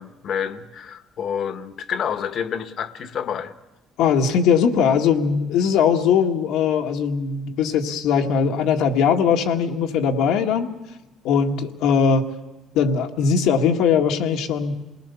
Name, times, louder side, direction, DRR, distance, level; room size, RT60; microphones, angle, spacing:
voice 1, 0.0-3.5, left 8 dB, 45° left, 1.2 m, -28 dB
voice 2, 4.0-10.7 11.2-12.2 12.8-14.7, left 6 dB, 80° left, 1.8 m, -20 dB
27.0 x 19.5 x 7.0 m
cardioid pair, 160°, 0 cm